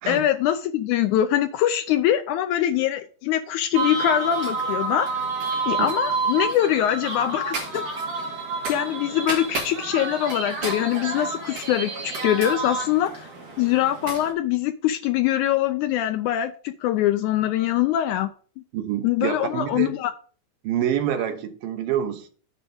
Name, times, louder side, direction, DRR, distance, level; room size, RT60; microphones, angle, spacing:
voice 1, 0.1-5.1 5.7-7.8 8.7-13.3 13.6-18.3 19.0-20.1, left 12 dB, 80° left, 1.8 m, -23 dB
sound 1, 3.7-14.3, right 3 dB, 70° right, 3.6 m, -29 dB
voice 2, 18.7-19.9 20.6-22.3, right 10 dB, 90° right, 2.8 m, -27 dB
9.7 x 3.4 x 7.0 m
omnidirectional pair, 3.9 m